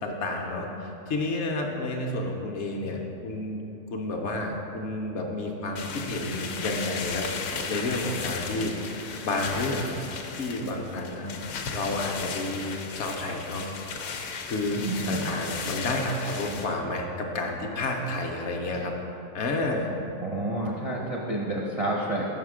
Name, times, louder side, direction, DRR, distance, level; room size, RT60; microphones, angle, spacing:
voice 1, 0.0-3.6 3.9-8.7 9.2-10.0 10.4-11.3 11.7-13.7 14.5-18.9 19.3-19.9, left 2 dB, 65° left, 1 dB, 0.8 m, -30 dB
sound 1, 5.8-16.7, left 5 dB, 85° left, 1.0 m, -36 dB
voice 2, 14.8-15.3 20.2-22.3, right 2 dB, 45° right, -4 dB, 0.5 m, -29 dB
5.8 x 5.7 x 4.8 m, 2.9 s
omnidirectional pair, 1.4 m